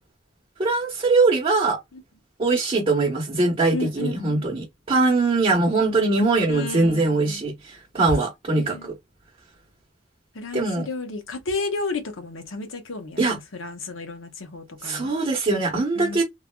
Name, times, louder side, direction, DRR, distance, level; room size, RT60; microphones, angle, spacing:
voice 1, 0.6-1.8 2.4-8.9 10.5-10.9 13.2-13.4 14.8-16.2, right 3 dB, 30° right, 1.0 m, -22 dB
voice 2, 3.7-4.5 6.5-7.4 8.5-8.9 10.3-15.1 16.0-16.2, left 3 dB, 75° left, 0.8 m, -33 dB
3.2 x 2.4 x 2.2 m
head